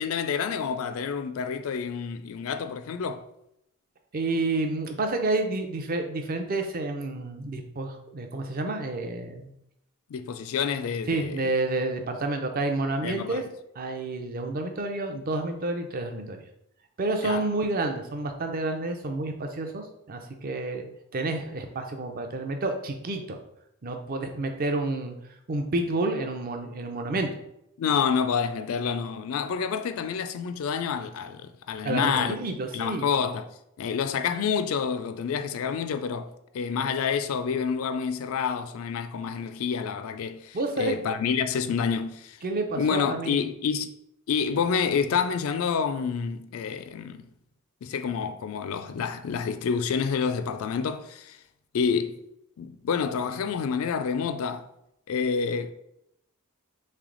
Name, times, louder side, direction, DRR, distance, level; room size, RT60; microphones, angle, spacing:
voice 1, 0.0-3.2 10.1-11.4 13.0-13.4 17.2-17.5 27.8-32.4 32.7-33.4 33.8-42.4 42.8-43.9 44.3-47.3 47.8-51.4 51.7-52.2 52.6-54.7 55.1-55.7, left 6 dB, 65° left, 0.3 m, -28 dB
voice 2, 4.1-9.5 11.1-13.4 13.8-16.4 17.0-20.8 21.1-23.4 23.8-25.1 25.5-27.3 31.8-33.1 40.5-40.9 42.4-43.4, right 2 dB, 40° right, 0.5 m, -29 dB
3.3 x 3.3 x 3.8 m
head